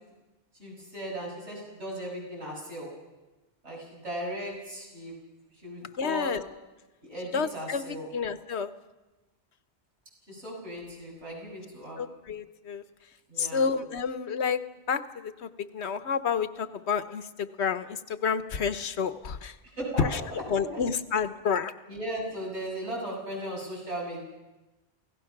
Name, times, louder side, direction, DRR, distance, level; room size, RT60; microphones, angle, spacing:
voice 1, 0.6-2.9 3.6-5.1 5.6-6.3 7.0-8.1 10.3-12.0 13.3-13.6 19.8-20.2 20.6-20.8 21.9-24.2, right 1 dB, 85° right, -3 dB, 7.5 m, -37 dB
voice 2, 6.0-6.4 7.3-8.7 12.0-12.8 13.4-14.6 14.9-19.6 20.0-21.7, left 6 dB, 75° left, 12 dB, 1.2 m, -30 dB
28.5 x 17.0 x 5.9 m, 1.1 s
omnidirectional pair, 1.1 m